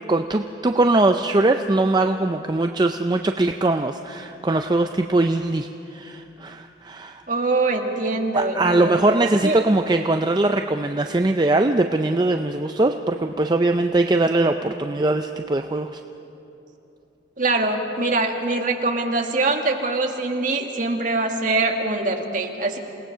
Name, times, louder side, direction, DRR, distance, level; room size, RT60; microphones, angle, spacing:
voice 1, 0.1-7.2 8.3-16.0, right 2 dB, 25° right, 5 dB, 0.5 m, -21 dB
voice 2, 7.3-9.6 17.4-22.8, right 2 dB, 45° right, 2 dB, 1.8 m, -23 dB
28.0 x 18.0 x 5.7 m, 2.9 s
head